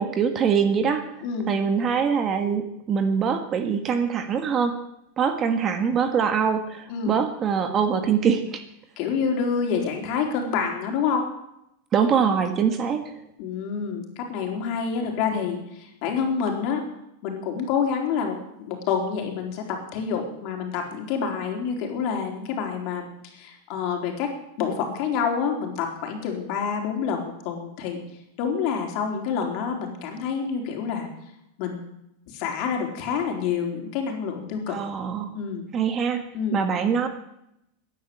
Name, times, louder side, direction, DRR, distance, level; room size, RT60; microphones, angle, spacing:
voice 1, 0.0-1.1 1.5-4.7 5.2-8.6 11.9-13.1 34.7-35.3 35.7-36.2 36.5-37.1, right 6 dB, 30° right, 7 dB, 1.5 m, -23 dB
voice 2, 9.0-11.3 13.4-16.8 17.2-28.0 28.4-31.1 31.6-31.9 32.3-34.8 35.3-35.6 36.3-36.6, left 6 dB, 50° left, 2 dB, 4.1 m, -27 dB
14.5 x 10.5 x 8.6 m, 0.82 s
supercardioid pair, 145°, 0 cm